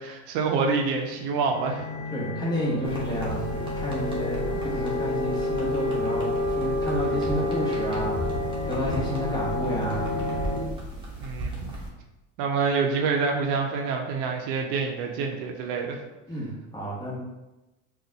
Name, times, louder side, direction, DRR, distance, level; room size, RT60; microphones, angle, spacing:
voice 1, 0.0-1.8 4.5-4.6 11.2-11.7 12.4-16.0, right 4 dB, 65° right, 2 dB, 0.6 m, -27 dB
sound 1, 1.0-10.6, left 2 dB, 45° left, 1.0 m, -29 dB
voice 2, 2.1-8.1 8.7-10.4 16.3-17.2, equal, 10° left, -6 dB, 1.4 m, -31 dB
sound 2, 2.8-11.9, equal, 15° right, 1.2 m, -36 dB
3.8 x 2.4 x 2.7 m, 1.0 s
hypercardioid pair, 85°, 37 cm